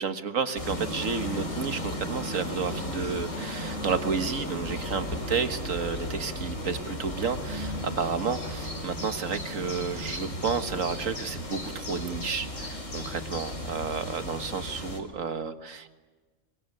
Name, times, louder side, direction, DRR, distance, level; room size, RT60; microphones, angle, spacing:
voice 1, 0.0-15.9, right 5 dB, 90° right, 9 dB, 1.9 m, -31 dB
sound 1, 0.6-15.0, left 1 dB, 75° left, 4.4 m, -35 dB
25.0 x 23.0 x 9.8 m, 1.4 s
omnidirectional pair, 1.3 m